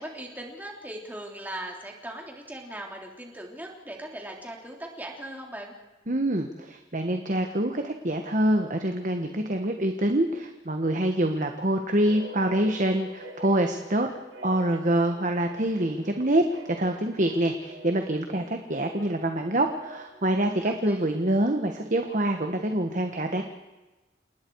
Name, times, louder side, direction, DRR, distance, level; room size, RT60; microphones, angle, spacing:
voice 1, 0.0-5.7 20.6-21.1, right 1 dB, 10° right, 0 dB, 3.3 m, -39 dB
voice 2, 6.1-14.1 14.4-23.4, right 1 dB, 45° right, 5 dB, 1.4 m, -26 dB
sound 1, 12.1-20.3, equal, 85° right, 3.7 m, -46 dB
29.0 x 19.5 x 4.8 m, 1.1 s
head